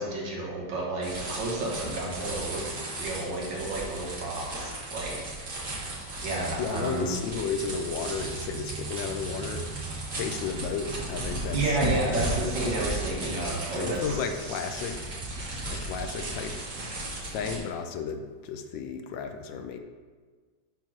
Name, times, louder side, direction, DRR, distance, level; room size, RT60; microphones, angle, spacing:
voice 1, 0.0-2.7 3.0-5.8 6.2-7.1 11.5-14.2 14.5-14.6, right 2 dB, 70° right, -2 dB, 2.1 m, -31 dB
sound 1, 1.0-17.6, right 1 dB, 40° right, 1.9 m, -35 dB
sound 2, 3.7-17.6, right 5 dB, 90° right, 1.7 m, -45 dB
voice 2, 6.6-9.7 10.1-11.8 13.7-15.0 15.7-16.6 17.3-19.8, left 6 dB, 75° left, 6 dB, 1.3 m, -33 dB
5.7 x 4.5 x 5.9 m, 1.5 s
omnidirectional pair, 2.1 m